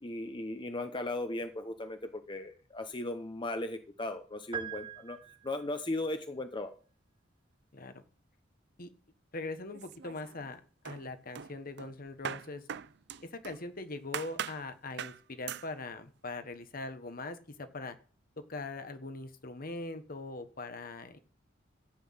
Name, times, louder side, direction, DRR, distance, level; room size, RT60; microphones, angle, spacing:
voice 1, 0.0-5.2 5.4-6.7, left 2 dB, 25° left, 7 dB, 0.9 m, -37 dB
sound 1, 4.5-5.8, right 8 dB, 25° right, 0.9 m, -42 dB
voice 2, 7.7-8.0 8.8-8.9 9.3-12.6 13.2-18.0 18.4-21.2, left 2 dB, 50° left, 9 dB, 1.3 m, -41 dB
sound 2, 9.7-10.5 10.8-13.6 14.1-14.6 15.0-15.2 15.5-15.7, right 8 dB, 60° right, 0.5 m, -41 dB
13.0 x 8.3 x 5.7 m, 0.42 s
head